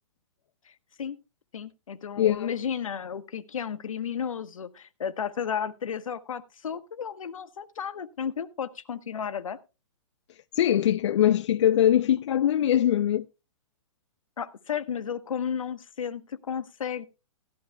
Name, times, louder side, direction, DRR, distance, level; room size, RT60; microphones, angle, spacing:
voice 1, 1.5-9.6 14.4-17.1, left 7 dB, 85° left, 1.1 m, -33 dB
voice 2, 2.2-2.5 10.5-13.3, left 11 dB, 65° left, 0.5 m, -22 dB
17.0 x 11.5 x 2.2 m
hypercardioid pair, 155°, 17 cm